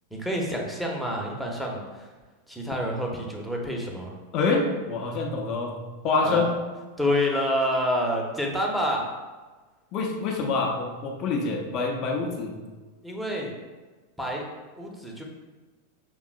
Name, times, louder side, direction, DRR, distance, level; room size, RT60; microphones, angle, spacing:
voice 1, 0.1-2.1 2.5-4.1 6.2-6.5 7.0-9.1 13.0-13.5 14.2-14.4 14.8-15.2, equal, ahead, -1 dB, 0.9 m, -28 dB
voice 2, 4.3-6.5 9.9-12.6, left 3 dB, 40° left, 1 dB, 0.7 m, -26 dB
6.1 x 3.5 x 2.4 m, 1.3 s
figure-of-eight pair, 90°, 0 cm